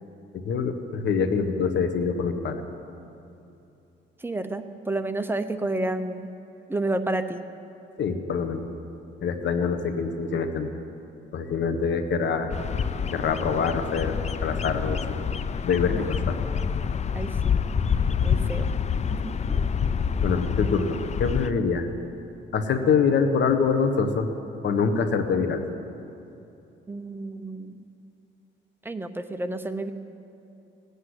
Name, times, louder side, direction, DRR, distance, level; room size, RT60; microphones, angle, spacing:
voice 1, 0.3-2.6 8.0-8.7 9.2-10.7 11.3-12.5 13.1-14.2 14.4-15.0 15.6-16.4 20.2-21.9 22.5-24.3 24.6-25.6, left 5 dB, 65° left, 7 dB, 1.4 m, -25 dB
voice 2, 4.2-6.3 6.7-7.4 15.9-16.1 17.1-17.5 18.2-18.7 19.1-19.7 26.9-27.8 28.8-29.9, right 2 dB, 10° right, 8 dB, 0.9 m, -30 dB
Bird vocalization bird call bird song, 12.5-21.5, left 6 dB, 35° left, 0.5 m, -27 dB
17.0 x 8.2 x 9.8 m, 2.8 s
cardioid pair, 90°, 20 cm